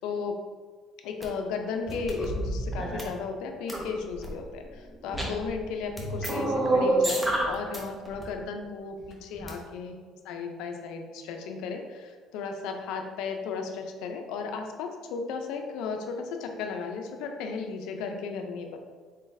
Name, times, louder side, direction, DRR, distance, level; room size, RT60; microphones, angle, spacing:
voice 1, 0.0-0.4 1.0-10.0 10.2-18.8, left 5 dB, 85° left, 4 dB, 0.5 m, -35 dB
sound 1, 1.2-1.3 1.9-3.1 3.7-4.3 5.1-5.6 6.0-7.8 8.1-8.2 9.4-9.5, right 2 dB, 10° right, 0.5 m, -27 dB
3.9 x 3.8 x 2.6 m, 1.5 s
cardioid pair, 175°, 0 cm